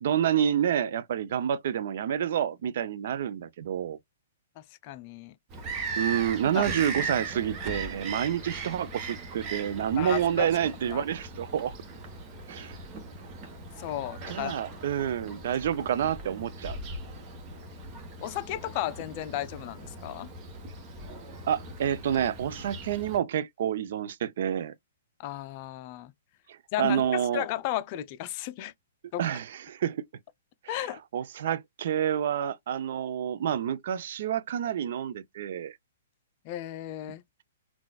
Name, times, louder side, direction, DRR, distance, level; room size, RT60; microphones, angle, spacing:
voice 1, 0.0-4.0 6.0-11.8 12.5-12.8 14.3-16.8 21.5-24.7 26.5-27.5 29.2-30.1 30.6-30.8 31.1-35.8, right 9 dB, 60° right, 0.4 m, -28 dB
voice 2, 4.6-5.4 6.5-6.7 10.0-10.5 10.9-11.0 13.8-14.5 18.2-20.3 25.2-26.1 26.7-28.7 29.1-29.2 30.7-31.0 36.4-37.2, left 14 dB, 40° left, 0.4 m, -34 dB
Bird vocalization bird call bird song, 5.5-23.2, right 3 dB, 30° right, 1.0 m, -39 dB
3.8 x 2.3 x 2.2 m
hypercardioid pair, 130°, 0 cm